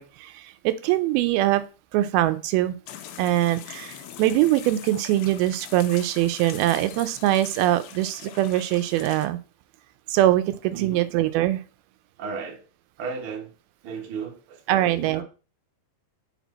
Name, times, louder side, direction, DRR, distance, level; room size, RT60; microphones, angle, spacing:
voice 1, 0.0-1.6 1.9-2.8 3.2-9.4 10.1-11.6 14.7-15.2, right 14 dB, 85° right, 12 dB, 2.4 m, -23 dB
sound 1, 2.9-9.3, left 10 dB, 85° left, 2.4 m, -42 dB
voice 2, 10.7-11.0 12.2-12.6 13.0-13.5 13.8-15.2, right 5 dB, 65° right, 2 dB, 1.3 m, -35 dB
6.1 x 4.2 x 4.1 m, 0.34 s
omnidirectional pair, 4.4 m